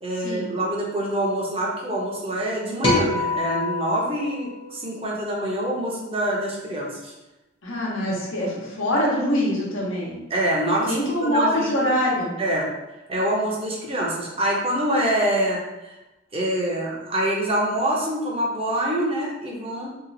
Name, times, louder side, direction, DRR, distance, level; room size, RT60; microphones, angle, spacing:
voice 1, 0.0-7.1 10.3-11.8 12.4-12.7 13.1-15.9 16.3-19.9, right 1 dB, 30° right, -3 dB, 0.7 m, -25 dB
sound 1, 2.8-5.3, left 3 dB, 25° left, 0.8 m, -27 dB
voice 2, 7.6-10.2 10.9-12.3, left 1 dB, 85° left, -4 dB, 1.0 m, -24 dB
2.8 x 2.4 x 3.9 m, 1.0 s
head